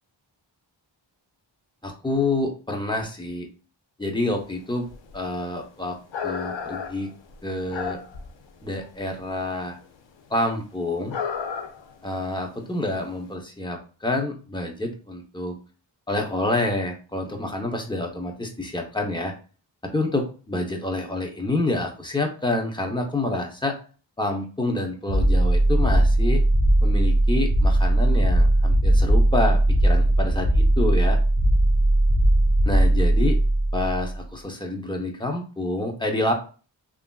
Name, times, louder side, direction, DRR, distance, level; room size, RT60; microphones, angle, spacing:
voice 1, 1.8-3.5 4.0-4.9 5.1-6.0 6.2-7.1 7.4-8.0 8.6-9.8 10.3-11.2 12.0-15.6 16.1-19.3 19.8-23.8 24.2-26.4 26.8-31.2 32.7-33.4 33.7-36.3, left 2 dB, 10° left, 1 dB, 0.7 m, -27 dB
sound 1, 4.6-4.7 4.8-5.5 5.9-8.4 8.7-9.4 9.8-9.9 10.2-10.3 11.1-12.0 12.3-12.4 13.0-13.1, left 6 dB, 75° left, 0.5 m, -33 dB
sound 2, 25.1-34.2, right 1 dB, 70° right, 1.0 m, -19 dB
3.2 x 2.5 x 2.2 m, 0.36 s
wide cardioid pair, 60°, 46 cm